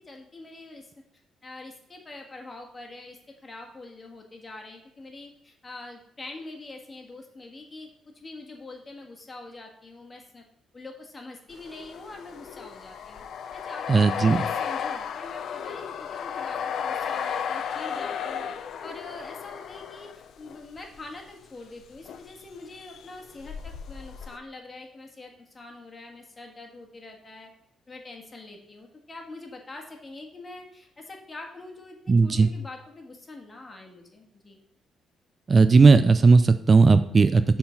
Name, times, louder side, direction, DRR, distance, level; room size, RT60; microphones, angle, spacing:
voice 1, 0.0-0.9 1.4-7.9 8.1-10.4 10.7-13.2 13.5-18.5 18.8-27.5 27.9-34.6, left 2 dB, 30° left, 1 dB, 1.5 m, -44 dB
sound 1, 11.5-21.0 21.9-22.5 22.7-24.4, left 7 dB, 65° left, 0.5 m, -34 dB
voice 2, 13.9-14.4 32.1-32.5 35.5-37.6, right 4 dB, 35° right, 12 dB, 0.3 m, -17 dB
6.7 x 3.8 x 5.7 m, 0.76 s
cardioid pair, 90°, 0 cm